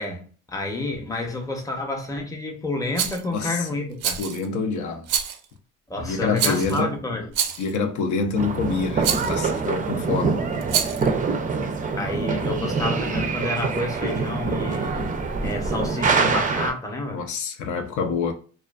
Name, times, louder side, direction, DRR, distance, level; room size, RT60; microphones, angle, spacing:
voice 1, 0.0-4.2 5.9-7.3 12.0-15.1 15.4-17.2, left 2 dB, 10° left, 0.6 m, -29 dB
Rattle, 3.0-3.2 4.0-4.5 5.1-5.5 6.4-6.8 7.3-7.8 9.0-9.4 10.6-11.1, right 8 dB, 85° right, 0.5 m, -26 dB
voice 2, 3.3-3.7 4.2-5.1 6.0-6.9 7.6-10.4 10.7-11.0 17.1-18.3, left 4 dB, 75° left, 0.5 m, -27 dB
sound 1, 8.4-16.7, right 4 dB, 25° right, 0.4 m, -25 dB
2.3 x 2.3 x 2.3 m
cardioid pair, 90°, 30 cm